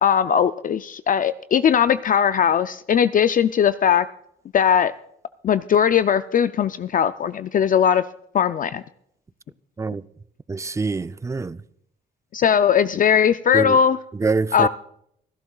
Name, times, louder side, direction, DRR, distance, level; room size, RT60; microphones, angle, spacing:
voice 1, 0.0-4.1 4.5-4.9 5.4-8.0 8.3-8.8 12.3-14.0 14.5-14.7, left 8 dB, 45° left, 0.4 m, -19 dB
voice 2, 10.5-11.6 13.5-13.8 14.2-14.7, right 4 dB, 15° right, 0.4 m, -25 dB
26.0 x 12.0 x 2.4 m
cardioid pair, 90°, 20 cm